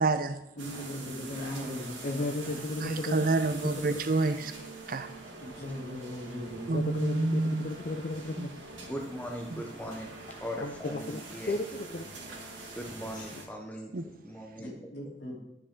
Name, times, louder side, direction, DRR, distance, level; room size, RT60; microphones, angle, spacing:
voice 1, 0.0-0.4 2.8-4.5 4.9-5.1 6.7-7.7 8.4-8.5 9.5-9.6 13.9-14.1, right 3 dB, 45° right, 0.5 m, -28 dB
voice 2, 0.5-2.6 5.4-7.1 14.6-15.4, equal, 60° left, 3.1 m, -39 dB
sound 1, 0.6-13.5, right 3 dB, 85° right, 1.6 m, -45 dB
voice 3, 2.0-3.2 3.6-4.0 6.7-8.6 10.6-12.0 13.1-13.2, left 2 dB, 45° left, 0.4 m, -34 dB
voice 4, 8.8-10.1 10.4-11.6 12.8-13.9 14.2-14.7, equal, 10° left, 0.7 m, -39 dB
11.5 x 5.0 x 3.7 m
head